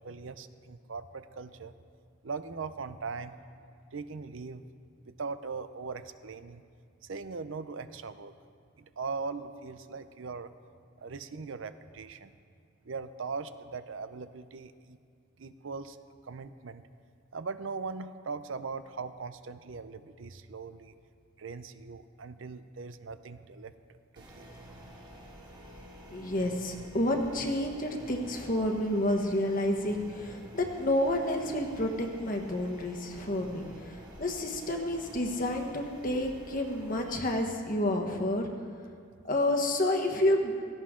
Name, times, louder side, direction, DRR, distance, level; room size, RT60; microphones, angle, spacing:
voice 1, 0.0-1.7 2.2-3.3 3.9-4.6 5.0-6.6 7.0-8.4 8.8-10.5 11.0-12.3 12.8-15.0 15.4-16.0 16.2-16.9 17.3-20.9 21.4-23.7 24.1-24.5, right 4 dB, 65° right, 12 dB, 0.6 m, -40 dB
sound 1, 24.2-37.2, equal, 20° right, 2.0 m, -49 dB
voice 2, 26.1-38.5 39.2-40.5, left 1 dB, 40° left, 2 dB, 1.3 m, -29 dB
17.0 x 15.5 x 3.8 m, 2.2 s
head